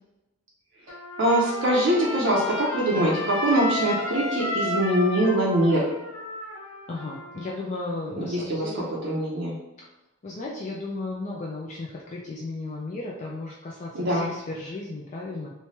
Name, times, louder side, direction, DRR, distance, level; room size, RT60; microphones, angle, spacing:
Trumpet, 0.9-7.5, left 2 dB, 75° left, 0.6 m, -32 dB
voice 1, 1.2-5.9 8.2-8.7 9.0-9.5 13.9-14.3, right 1 dB, 55° right, -5 dB, 0.6 m, -23 dB
voice 2, 6.9-8.9 10.2-15.5, left 2 dB, 35° left, -3 dB, 0.3 m, -35 dB
3.1 x 2.2 x 2.7 m, 0.96 s
head